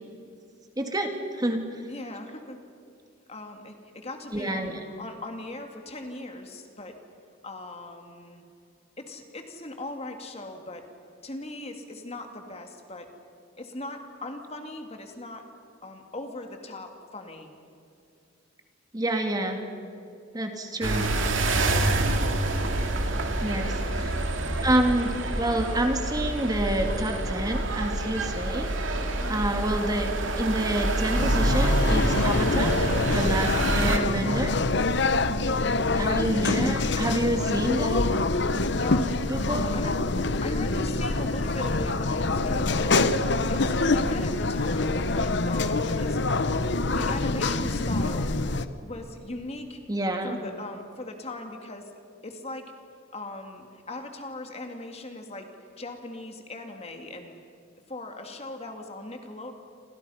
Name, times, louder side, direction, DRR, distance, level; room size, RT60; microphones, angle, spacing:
voice 1, 0.8-1.7 4.3-4.8 18.9-19.6 20.3-21.1 23.4-24.1 24.6-32.8 33.0-34.6 35.9-38.0 39.3-39.7 49.9-50.4, right 1 dB, 20° right, 4 dB, 2.3 m, -28 dB
voice 2, 1.8-2.6 3.3-7.0 7.4-8.4 9.0-10.9 11.2-13.1 13.6-15.5 15.8-17.5 23.1-24.7 29.1-29.4 38.8-39.4 39.7-40.0 40.4-46.4 46.9-48.4 48.8-49.8 50.2-51.9 52.2-52.7 53.1-55.5 55.8-57.3 57.9-59.5, left 2 dB, 35° left, 4 dB, 2.4 m, -39 dB
sound 1, 20.8-34.0, right 2 dB, 75° right, 2.7 m, -27 dB
sound 2, 31.2-48.7, left 3 dB, 60° left, 1.1 m, -25 dB
29.5 x 26.0 x 5.8 m, 2.5 s
head